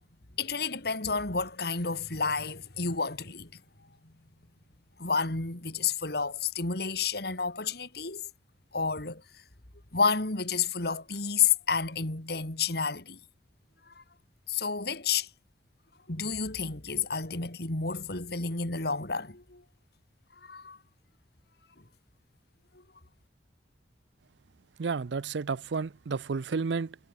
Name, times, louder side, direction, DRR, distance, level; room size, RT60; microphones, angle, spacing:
voice 1, 0.4-3.5 5.0-8.2 8.7-9.2 9.9-13.2 14.0-14.1 14.5-15.3 16.1-19.6 20.4-20.8, left 5 dB, 60° left, 2.7 m, -30 dB
voice 2, 24.8-27.0, right 4 dB, 75° right, 0.5 m, -31 dB
head